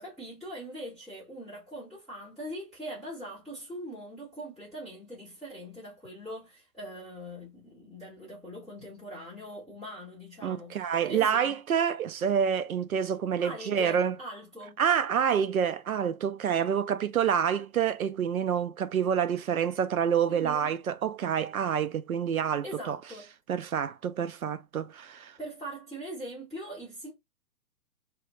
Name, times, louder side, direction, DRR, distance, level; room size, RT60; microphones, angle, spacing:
voice 1, 0.0-11.6 11.9-12.0 13.4-14.8 20.3-20.7 22.6-23.3 25.4-27.1, equal, ahead, 0.5 m, -42 dB
voice 2, 10.4-14.2 14.8-23.0 23.5-25.4, right 8 dB, 65° right, 0.5 m, -27 dB
2.8 x 2.3 x 3.7 m
figure-of-eight pair, 130°, 47 cm